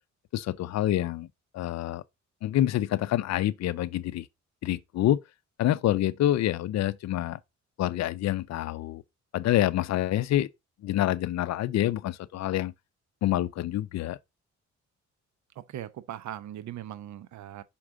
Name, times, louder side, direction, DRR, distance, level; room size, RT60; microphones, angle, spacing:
voice 1, 0.3-1.3 1.5-2.0 2.4-4.3 4.6-5.2 5.6-7.4 7.8-9.0 9.3-10.5 10.8-12.7 13.2-14.2, left 13 dB, 60° left, 0.5 m, -27 dB
voice 2, 15.6-17.6, right 12 dB, 70° right, 0.8 m, -39 dB
6.0 x 4.7 x 3.7 m
cardioid pair, 90°, 30 cm